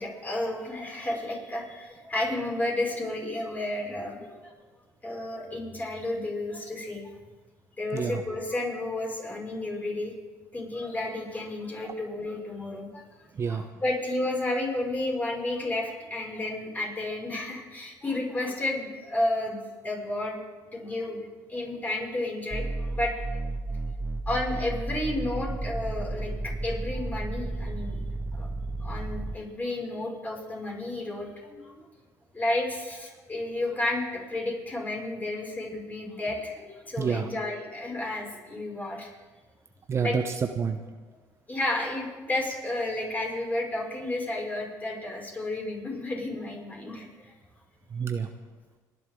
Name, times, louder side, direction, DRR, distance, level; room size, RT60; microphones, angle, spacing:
voice 1, 0.0-4.5 5.0-7.1 7.8-10.1 10.5-13.0 13.5-20.4 20.7-23.2 24.3-28.0 28.3-28.5 28.8-31.8 32.3-39.1 40.0-40.2 41.5-47.3, left 2 dB, 20° left, -2 dB, 6.0 m, -32 dB
voice 2, 7.9-8.2 11.8-11.9 13.3-13.7 37.0-37.3 39.9-40.8 47.9-48.3, right 6 dB, 35° right, 7 dB, 0.9 m, -28 dB
sound 1, 22.5-29.4, right 2 dB, 15° right, 0.9 m, -33 dB
30.0 x 11.0 x 3.8 m, 1.3 s
supercardioid pair, 80°, 8 cm